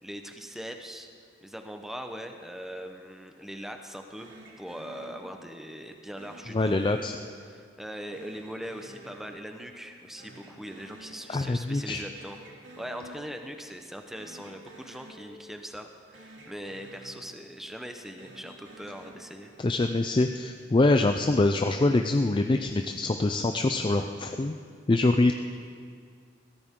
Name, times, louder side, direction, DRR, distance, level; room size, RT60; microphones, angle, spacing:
voice 1, 0.0-1.1 1.4-6.8 7.4-12.4 12.8-19.5, equal, ahead, 5 dB, 1.0 m, -41 dB
sound 1, 4.2-5.7 6.2-7.7 8.1-9.9 10.2-11.7 12.0-13.7 14.1-15.9 16.1-17.7 18.1-19.9, right 1 dB, 75° right, 2.6 m, -51 dB
voice 2, 6.5-7.2 11.3-12.0 19.6-24.6 24.9-25.3, left 2 dB, 25° left, 6 dB, 0.4 m, -24 dB
22.0 x 15.5 x 3.8 m, 2.1 s
head